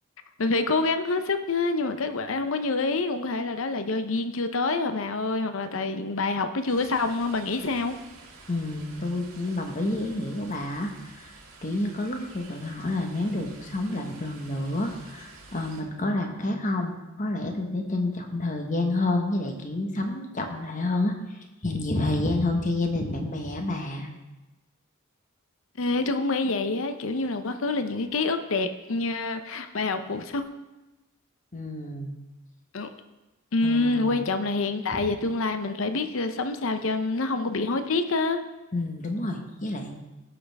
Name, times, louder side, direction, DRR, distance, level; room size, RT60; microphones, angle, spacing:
voice 1, 0.4-7.9 25.8-30.4 32.7-32.9 33.5-38.4, left 3 dB, 65° left, 8 dB, 0.7 m, -27 dB
sound 1, 6.7-15.8, right 3 dB, 75° right, 1.9 m, -49 dB
voice 2, 8.5-11.3 11.6-24.1 31.5-32.1 33.6-34.2 38.7-39.9, left 2 dB, 35° left, 3 dB, 1.2 m, -29 dB
16.0 x 6.5 x 3.5 m, 1.1 s
head